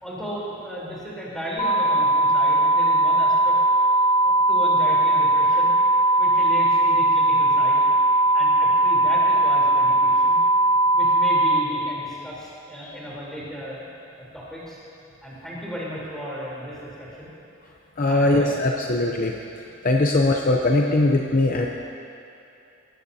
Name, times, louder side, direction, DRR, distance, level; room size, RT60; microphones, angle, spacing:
voice 1, 0.0-3.5 4.2-5.7 6.2-7.8 8.3-10.4 10.9-13.9 14.2-14.8 15.2-17.3 18.0-18.6, equal, 5° left, -8 dB, 3.6 m, -35 dB
sound 1, 1.6-11.6, right 1 dB, 25° left, 1.1 m, -19 dB
voice 2, 18.0-19.3 19.8-21.7, left 2 dB, 40° left, 1 dB, 0.6 m, -20 dB
19.0 x 14.0 x 2.8 m, 2.8 s
head